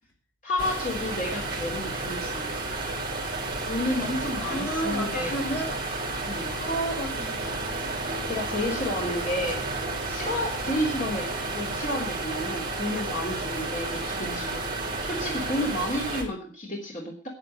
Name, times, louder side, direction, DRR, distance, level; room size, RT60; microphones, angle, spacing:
voice 1, 0.4-2.7 3.7-5.5 6.2-6.5 8.3-9.6 10.1-14.6 15.0-17.3, left 1 dB, 35° left, -1 dB, 3.2 m, -31 dB
sound 1, 0.6-16.2, right 2 dB, 25° right, 3.5 m, -32 dB
voice 2, 4.4-5.8 6.6-7.8 8.6-9.1 9.5-9.6 14.2-14.4, right 1 dB, 65° left, 2 dB, 4.1 m, -33 dB
10.0 x 9.8 x 7.7 m, 0.41 s
head